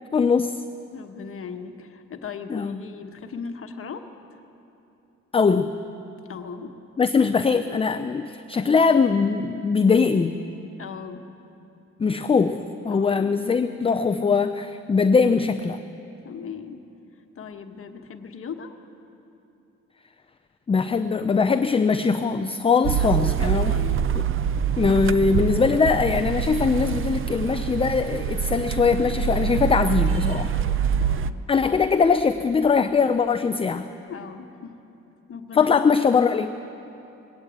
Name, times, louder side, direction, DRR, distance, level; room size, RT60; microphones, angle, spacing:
voice 1, 0.1-0.6 2.5-2.8 5.3-5.7 7.0-10.4 12.0-15.8 20.7-23.7 24.1-24.3 24.8-30.5 31.5-33.9 35.5-36.5, left 5 dB, 20° left, 9 dB, 0.4 m, -21 dB
voice 2, 0.9-4.4 6.3-6.8 10.8-11.2 12.8-13.3 16.2-16.8 17.3-18.8 23.0-24.0 30.5-31.4 34.1-34.8 35.3-35.9, left 6 dB, 45° left, 5 dB, 1.2 m, -38 dB
sound 1, 22.8-31.3, right 8 dB, 45° right, 0.5 m, -25 dB
20.0 x 8.9 x 7.9 m, 2.8 s
cardioid pair, 90°, 30 cm